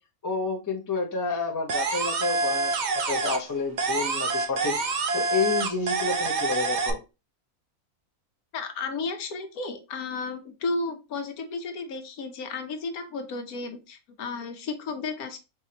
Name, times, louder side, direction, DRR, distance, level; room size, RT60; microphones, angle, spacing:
voice 1, 0.2-2.7 3.0-4.8 5.1-7.0, left 4 dB, 20° left, 0 dB, 0.5 m, -29 dB
sound 1, 1.7-3.5 3.8-6.9, right 3 dB, 80° right, 0.4 m, -27 dB
voice 2, 8.5-15.4, left 3 dB, 70° left, 7 dB, 1.2 m, -33 dB
4.8 x 3.1 x 2.8 m, 0.27 s
omnidirectional pair, 1.6 m